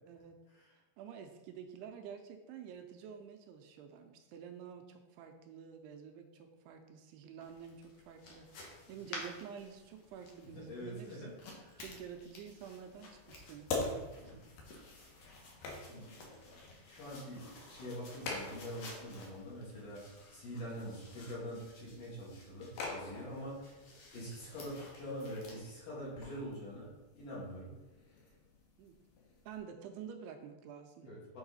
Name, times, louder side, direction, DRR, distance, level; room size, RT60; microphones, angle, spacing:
voice 1, 0.1-0.4 0.7-11.3 11.8-14.5 28.8-29.0 29.5-31.1, right 7 dB, 85° right, 5 dB, 2.4 m, -49 dB
sound 1, 7.4-25.6, left 2 dB, 85° left, 1.4 m, -54 dB
voice 2, 10.5-11.3 11.5-11.8 14.2-14.4 15.8-16.6 16.8-20.0 20.3-23.7 24.1-27.7 31.0-31.4, equal, 55° left, -7 dB, 3.4 m, -45 dB
sound 2, 12.0-29.6, left 3 dB, 70° left, 2.7 m, -47 dB
7.9 x 4.7 x 4.0 m, 1.1 s
omnidirectional pair, 4.9 m